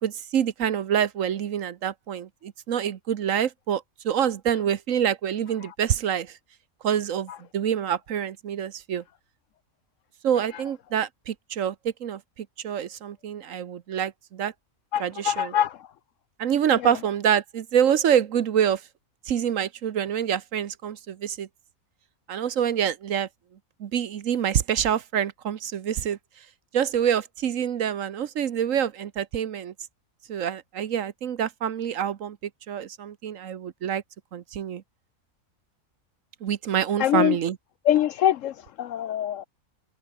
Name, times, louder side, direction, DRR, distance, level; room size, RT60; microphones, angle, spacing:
voice 1, 0.0-6.4 6.8-9.0 10.2-14.5 15.0-15.5 16.4-18.8 19.3-21.5 22.3-23.3 23.8-26.2 26.7-29.7 30.3-34.0 34.3-34.8 36.4-37.6, right 9 dB, 65° right, 1.2 m, -26 dB
voice 2, 14.9-15.9 16.8-16.9 37.0-37.4 37.8-39.4, left 11 dB, 70° left, 0.8 m, -24 dB
omnidirectional pair, 1.6 m